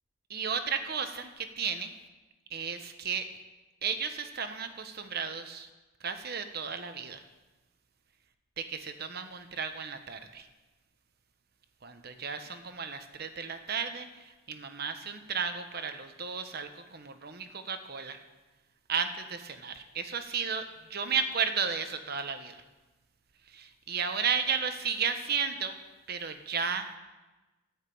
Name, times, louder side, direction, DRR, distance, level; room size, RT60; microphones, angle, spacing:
voice 1, 0.3-2.0 2.5-3.3 3.8-5.7 6.0-7.3 8.6-10.5 11.8-18.2 18.9-22.6 23.5-25.8 26.1-26.9, right 6 dB, 50° right, 8 dB, 1.0 m, -34 dB
13.5 x 6.5 x 8.6 m, 1.2 s
head